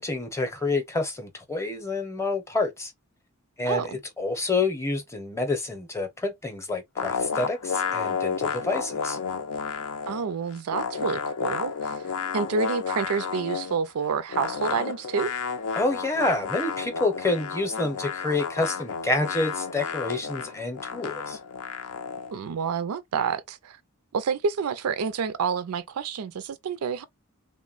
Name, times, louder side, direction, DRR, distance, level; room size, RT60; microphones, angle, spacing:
voice 1, 0.0-2.9 3.6-9.2 15.7-21.4, left 2 dB, 15° left, 0.6 m, -28 dB
voice 2, 3.7-4.0 10.1-15.3 22.3-23.8 24.1-27.0, right 6 dB, 90° right, 0.4 m, -29 dB
sound 1, 7.0-10.3 10.5-13.8 14.3-22.3, left 6 dB, 80° left, 0.5 m, -31 dB
3.2 x 2.1 x 2.4 m
head